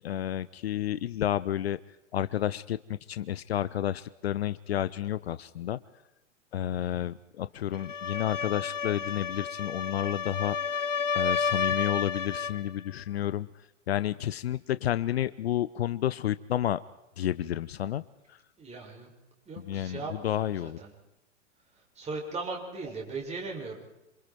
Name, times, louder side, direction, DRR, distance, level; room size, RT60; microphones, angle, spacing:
voice 1, 0.0-1.8 2.1-2.8 3.1-5.8 6.5-10.8 11.1-13.5 13.9-16.8 17.2-18.0 19.7-20.8, left 11 dB, 55° left, 16 dB, 0.8 m, -30 dB
voice 2, 6.7-7.1 18.6-19.1 19.4-20.9 21.9-23.8, right 3 dB, 15° right, 0 dB, 6.7 m, -38 dB
sound 1, 7.7-12.6, left 6 dB, 80° left, 1.1 m, -31 dB
27.5 x 27.0 x 4.6 m, 0.91 s
figure-of-eight pair, 105°, 37 cm